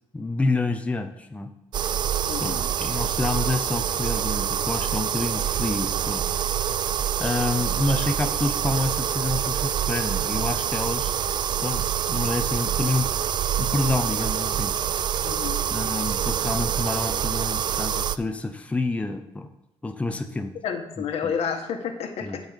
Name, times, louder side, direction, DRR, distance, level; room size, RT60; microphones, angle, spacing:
voice 1, 0.1-1.5 2.4-6.2 7.2-11.1 11.6-13.1 13.6-14.7 15.7-19.5 19.8-20.5 21.0-21.3 22.2-22.4, left 2 dB, 10° left, 6 dB, 0.8 m, -28 dB
sound 1, 1.7-18.2, right 9 dB, 45° right, 0.3 m, -26 dB
voice 2, 2.3-2.6 15.2-15.6 20.6-22.4, left 7 dB, 85° left, 5 dB, 1.5 m, -30 dB
11.5 x 5.6 x 7.3 m, 0.87 s
cardioid pair, 150°, 10 cm